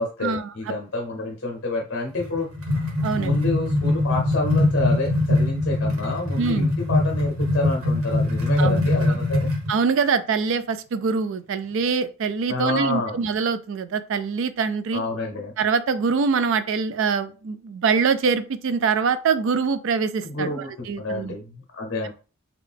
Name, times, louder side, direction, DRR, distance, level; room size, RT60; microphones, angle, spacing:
voice 1, 0.0-2.5 3.1-9.4 12.5-13.2 14.9-15.5 20.2-22.1, left 2 dB, 50° left, 1 dB, 0.7 m, -28 dB
sound 1, 2.2-9.7, left 2 dB, 80° right, 1.1 m, -22 dB
voice 2, 3.0-3.4 6.4-6.6 8.6-8.9 9.7-15.0 15.6-21.3, right 5 dB, 60° right, 12 dB, 0.3 m, -24 dB
3.7 x 2.3 x 3.4 m, 0.35 s
head